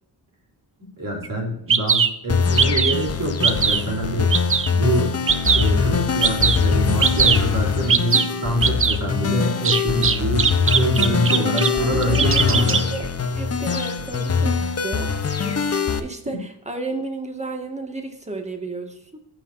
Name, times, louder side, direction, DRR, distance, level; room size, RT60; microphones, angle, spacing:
voice 1, 1.0-4.3 4.7-5.2 5.5-12.8 16.3-16.4, right 1 dB, 50° right, -2 dB, 3.5 m, -25 dB
Bird vocalization bird call bird song, 1.2-1.3 1.7-2.1 2.6-3.0 3.4-3.8 4.3-4.7 5.3-5.7 6.2-6.6 7.0-7.4 7.9-8.3 8.6-9.0 9.6-11.7 12.0-12.8, right 6 dB, 30° right, 0.6 m, -19 dB
sound 1, 2.3-16.0, left 5 dB, 35° left, 0.9 m, -23 dB
voice 2, 11.7-13.1 13.4-19.2, right 2 dB, 15° right, 4 dB, 1.8 m, -33 dB
15.0 x 5.9 x 2.7 m, 0.80 s
cardioid pair, 105°, 42 cm